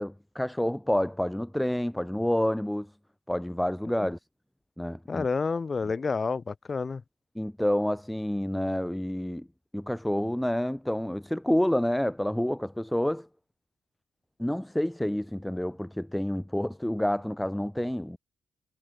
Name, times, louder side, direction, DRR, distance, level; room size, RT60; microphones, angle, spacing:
voice 1, 0.0-2.9 3.3-4.2 4.8-5.3 7.4-9.5 9.7-13.3 14.4-18.2, left 1 dB, 5° left, 0.3 m, -28 dB
voice 2, 5.1-7.0, left 4 dB, 30° left, 1.8 m, -30 dB
cardioid pair, 110°, 0 cm